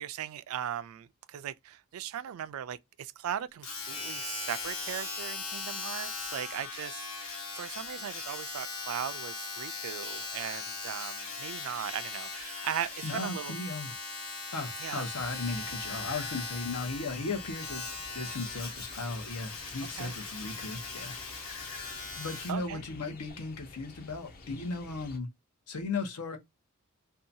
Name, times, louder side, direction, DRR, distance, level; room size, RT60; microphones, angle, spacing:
voice 1, 0.0-13.5 14.8-15.0 19.9-20.1 22.5-22.8, right 10 dB, 65° right, 0.3 m, -38 dB
Domestic sounds home sounds, 3.6-22.6 23.3-23.4, left 4 dB, 70° left, 1.2 m, -39 dB
voice 2, 13.0-13.9 14.5-21.1 22.2-25.3 25.7-26.4, left 3 dB, 90° left, 0.8 m, -36 dB
sound 1, 15.2-25.2, left 3 dB, 40° left, 0.5 m, -51 dB
2.7 x 2.2 x 2.6 m
head